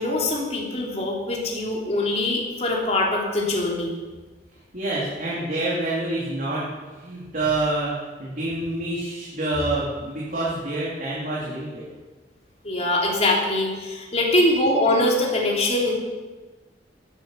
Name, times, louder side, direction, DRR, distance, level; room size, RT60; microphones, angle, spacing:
voice 1, 0.0-3.9 12.6-15.9, left 1 dB, 40° left, -2 dB, 2.9 m, -23 dB
voice 2, 4.7-7.9 8.2-11.9, right 2 dB, 50° right, -7 dB, 3.3 m, -27 dB
15.5 x 10.5 x 5.8 m, 1.3 s
head